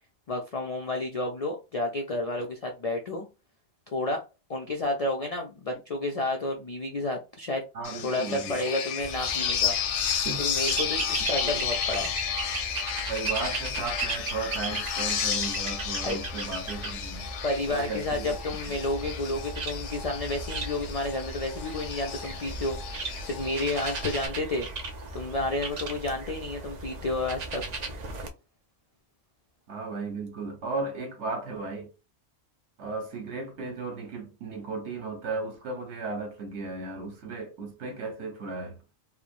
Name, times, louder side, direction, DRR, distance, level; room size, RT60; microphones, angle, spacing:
voice 1, 0.3-3.3 3.9-4.2 4.5-7.6 8.0-9.8 10.4-12.1 16.0-16.2 17.4-22.8 23.2-24.7 25.1-27.6, left 2 dB, 60° left, 0.3 m, -31 dB
voice 2, 7.7-8.6 10.2-10.5 11.4-11.6 13.1-17.3 17.7-18.4 18.7-18.8 29.7-31.9 32.8-38.8, right 3 dB, 80° right, 1.2 m, -35 dB
sound 1, 7.8-24.3, left 8 dB, 90° left, 0.9 m, -33 dB
sound 2, 9.0-28.3, right 3 dB, 55° right, 0.5 m, -36 dB
3.1 x 2.0 x 2.4 m
omnidirectional pair, 1.2 m